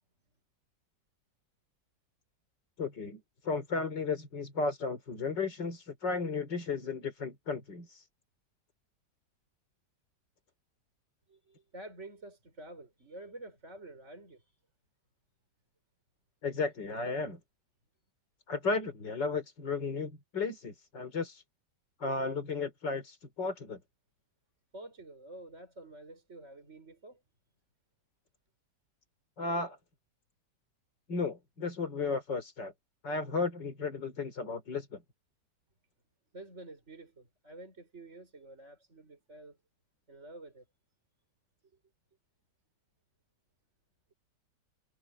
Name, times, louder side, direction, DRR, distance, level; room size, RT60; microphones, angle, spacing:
voice 1, 2.8-8.1 16.4-17.4 18.5-21.4 22.0-23.8 29.4-29.8 31.1-32.7 33.0-35.0, left 4 dB, 85° left, 4.5 m, -34 dB
voice 2, 11.3-14.6 24.7-27.2 36.3-39.6 40.1-40.7, right 2 dB, 40° right, 6.0 m, -49 dB
omnidirectional pair, 1.9 m